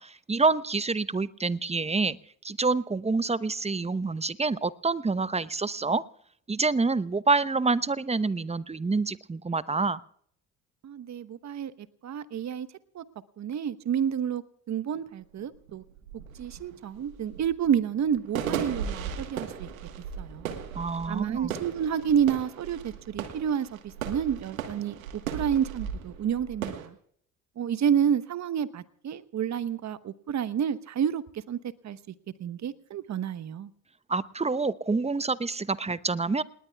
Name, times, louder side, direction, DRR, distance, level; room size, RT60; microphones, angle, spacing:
voice 1, 0.0-2.2 2.4-6.0 6.5-10.0 20.7-21.6 34.1-36.4, right 4 dB, 15° right, 16 dB, 0.9 m, -27 dB
voice 2, 10.8-11.7 12.0-12.7 12.9-13.0 13.4-14.4 14.7-15.8 16.4-19.7 20.2-20.5 21.1-23.7 24.0-26.9 27.6-31.6 31.8-32.0 32.4-33.7, right 8 dB, 45° right, 16 dB, 1.1 m, -29 dB
sound 1, 14.9-15.0 15.4-26.9, right 8 dB, 90° right, 1.5 m, -37 dB
28.5 x 20.0 x 2.3 m, 0.63 s
hypercardioid pair, 50°, 39 cm